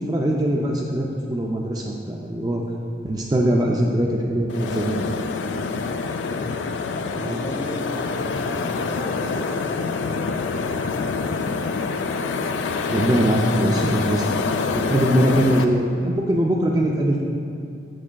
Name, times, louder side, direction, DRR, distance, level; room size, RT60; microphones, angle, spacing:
voice 1, 0.0-2.6 3.0-5.1 7.2-7.4 12.9-14.2 14.7-17.2, right 1 dB, 20° right, -1 dB, 0.3 m, -22 dB
sound 1, 4.5-15.6, left 4 dB, 70° left, 0.3 m, -26 dB
voice 2, 5.5-5.9 6.2-6.7 7.2-11.2, equal, 25° left, -1 dB, 0.6 m, -36 dB
7.4 x 6.9 x 2.3 m, 2.5 s
head